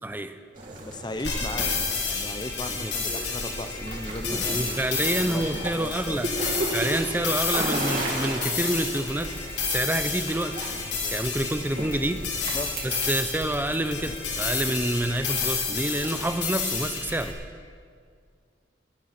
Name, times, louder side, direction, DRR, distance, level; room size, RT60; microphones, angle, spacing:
voice 1, 0.0-0.4 2.7-2.9 4.2-6.3 6.7-9.4 9.6-10.6 11.1-12.3 12.8-17.4, right 1 dB, 10° right, 9 dB, 0.6 m, -28 dB
sound 1, 0.5-16.4, right 1 dB, 45° right, 2.7 m, -36 dB
voice 2, 0.8-1.7 2.1-4.8 5.2-6.3 12.3-12.7, left 1 dB, 25° left, 8 dB, 0.8 m, -36 dB
sound 2, 1.2-17.3, left 5 dB, 70° left, 3.1 m, -30 dB
18.0 x 11.5 x 5.9 m, 2.1 s
head